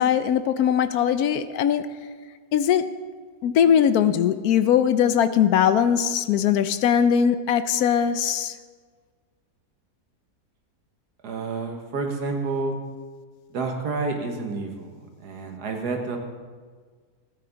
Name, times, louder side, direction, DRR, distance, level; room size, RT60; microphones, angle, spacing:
voice 1, 0.0-1.8 2.5-2.8 3.4-8.5, left 8 dB, 75° left, 12 dB, 1.0 m, -20 dB
voice 2, 11.2-12.8 13.5-16.2, right 3 dB, 80° right, 3 dB, 1.9 m, -29 dB
16.0 x 9.4 x 4.0 m, 1.5 s
omnidirectional pair, 1.7 m